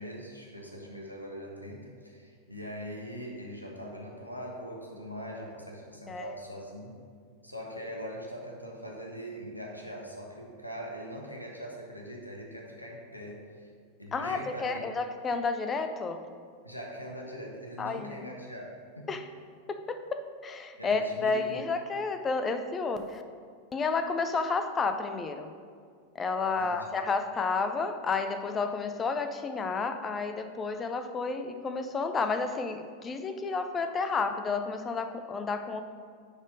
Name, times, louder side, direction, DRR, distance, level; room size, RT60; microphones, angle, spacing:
voice 1, 0.0-6.9 7.4-13.7 14.0-14.9 16.6-19.2 20.8-21.7 26.5-26.9, equal, 85° left, 0 dB, 1.2 m, -42 dB
voice 2, 14.1-16.3 17.8-18.2 19.1-19.2 19.7-23.2 23.7-25.5 26.1-35.8, left 4 dB, 20° left, 9 dB, 0.5 m, -31 dB
9.7 x 4.3 x 5.0 m, 2.1 s
figure-of-eight pair, 90°, 0 cm